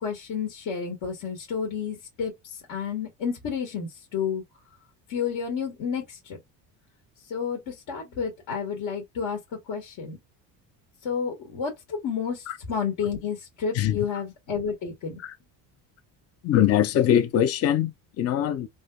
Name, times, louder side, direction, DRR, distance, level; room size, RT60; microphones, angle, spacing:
voice 1, 0.0-2.3 2.7-4.4 5.1-6.4 7.3-9.4 9.7-10.2 11.0-12.4 12.7-15.2, left 6 dB, 60° left, 1.3 m, -30 dB
voice 2, 13.7-14.1 15.2-15.4 16.4-18.7, left 10 dB, 40° left, 0.5 m, -23 dB
3.3 x 2.8 x 2.2 m
cardioid pair, 135°, 39 cm